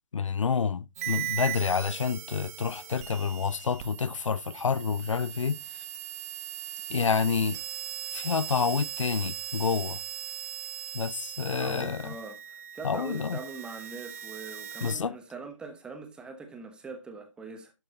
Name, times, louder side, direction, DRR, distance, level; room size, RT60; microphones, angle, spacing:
voice 1, 0.1-5.8 6.9-7.6 8.1-10.0 10.9-12.1 12.8-13.4 14.8-15.2, left 6 dB, 70° left, 0.5 m, -28 dB
sound 1, 1.0-15.0, right 12 dB, 30° right, 0.9 m, -39 dB
voice 2, 11.6-17.7, right 4 dB, 5° right, 1.0 m, -42 dB
12.0 x 4.7 x 3.7 m
figure-of-eight pair, 145°, 16 cm